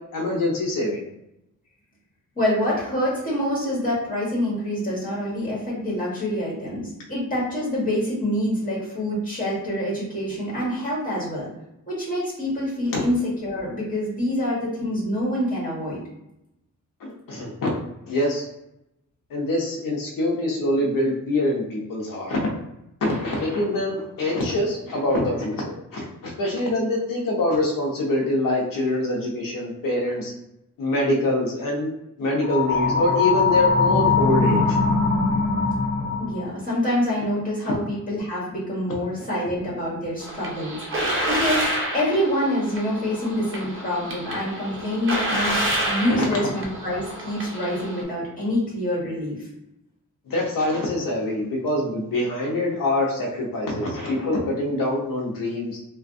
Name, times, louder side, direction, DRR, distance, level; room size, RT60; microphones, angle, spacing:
voice 1, 0.1-1.0 17.0-17.7 18.1-18.5 19.3-22.5 23.0-30.3 30.8-31.9 32.2-34.8 46.1-46.2 50.3-55.8, left 1 dB, 85° left, -2 dB, 0.7 m, -24 dB
voice 2, 2.3-11.5 11.9-16.0 36.2-45.6 45.9-49.5, left 1 dB, 25° left, -6 dB, 1.3 m, -26 dB
sound 1, 32.4-36.4, left 4 dB, 50° left, 0.9 m, -21 dB
sound 2, 40.2-48.0, right 1 dB, 40° right, 0.6 m, -28 dB
3.3 x 2.2 x 2.5 m, 0.84 s
wide cardioid pair, 145°, 33 cm